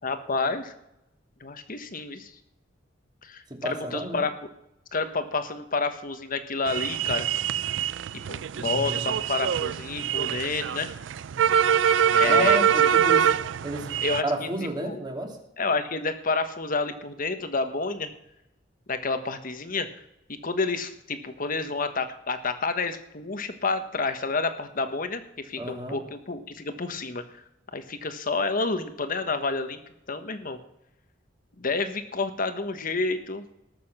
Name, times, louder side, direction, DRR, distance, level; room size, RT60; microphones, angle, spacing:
voice 1, 0.0-0.7 1.4-2.3 3.2-4.3 4.9-7.3 8.3-10.9 12.1-12.6 14.0-15.0 15.6-18.1 18.9-19.9 20.4-27.4 27.7-29.8 30.1-30.6 31.6-33.4, left 3 dB, 50° left, 9 dB, 1.3 m, -29 dB
voice 2, 3.5-4.2 8.5-9.0 12.2-13.3 13.6-13.9 14.2-15.4 25.6-26.0, right 1 dB, 25° right, 2 dB, 2.4 m, -31 dB
sound 1, 6.7-14.2, right 9 dB, 75° right, 0.4 m, -24 dB
19.0 x 6.8 x 6.6 m, 0.84 s
head